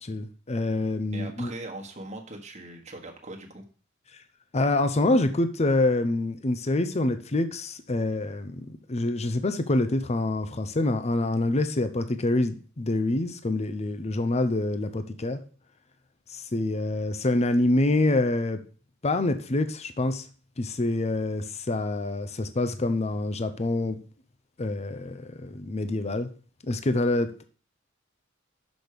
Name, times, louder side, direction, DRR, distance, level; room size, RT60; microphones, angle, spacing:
voice 1, 0.0-1.5 4.5-8.6 8.9-15.4 16.3-18.6 19.0-20.2 20.6-24.0 24.6-26.3 26.7-27.4, left 2 dB, 35° left, 0.6 m, -26 dB
voice 2, 1.1-3.6, right 2 dB, 35° right, 1.4 m, -40 dB
6.2 x 5.2 x 6.7 m
head